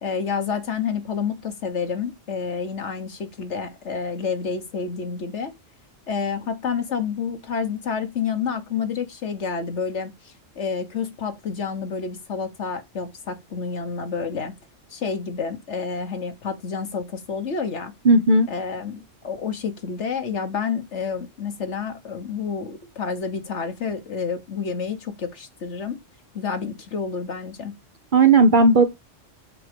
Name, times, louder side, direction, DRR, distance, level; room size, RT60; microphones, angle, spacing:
voice 1, 0.0-5.5 6.1-14.5 14.9-17.9 18.5-26.0 26.3-27.7, left 6 dB, 65° left, 1.5 m, -29 dB
voice 2, 18.0-18.5 28.1-28.9, right 3 dB, 45° right, 0.9 m, -14 dB
6.7 x 4.3 x 5.2 m
omnidirectional pair, 1.3 m